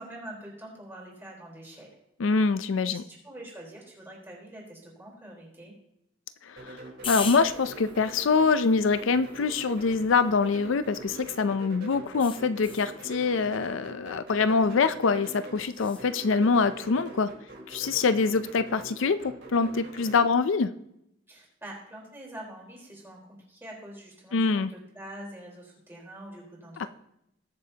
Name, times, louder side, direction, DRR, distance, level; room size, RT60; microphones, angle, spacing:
voice 1, 0.0-1.9 2.9-5.7 21.3-23.2 23.5-26.9, right 1 dB, 10° right, -3 dB, 3.9 m, -45 dB
voice 2, 2.2-3.0 6.4-17.3 17.7-20.7 24.3-24.7 26.8-26.9, left 4 dB, 75° left, 12 dB, 0.5 m, -25 dB
sound 1, 6.6-20.3, right 2 dB, 60° right, 4.1 m, -44 dB
sound 2, 7.0-11.4 12.2-13.0 15.7-16.1, left 7 dB, 25° left, 0.6 m, -41 dB
20.5 x 7.5 x 2.8 m, 0.79 s
head